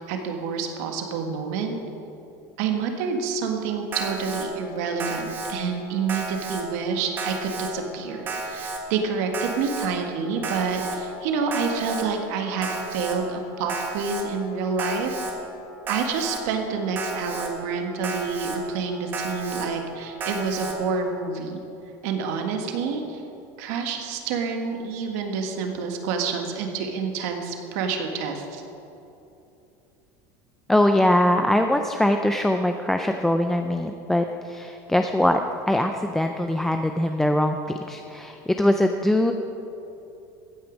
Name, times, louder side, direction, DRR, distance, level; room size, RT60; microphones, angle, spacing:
voice 1, 0.1-1.8 2.6-15.2 15.9-21.6 22.0-23.2 23.6-28.6, right 5 dB, 65° right, 4 dB, 1.6 m, -28 dB
Alarm, 3.9-4.5 5.0-5.5 6.1-6.6 7.2-7.7 8.3-8.8 9.3-9.9 10.4-11.0 11.5-12.0 12.6-13.2 13.7-14.2 14.8-15.3 15.9-16.4 17.0-17.5 18.0-18.6 19.1-19.7 20.2-20.7, right 3 dB, 25° right, 1.4 m, -32 dB
voice 2, 30.7-35.4 35.7-37.6 37.9-39.3, left 1 dB, 5° left, 5 dB, 0.3 m, -22 dB
15.0 x 9.3 x 5.2 m, 2.9 s
cardioid pair, 165°, 9 cm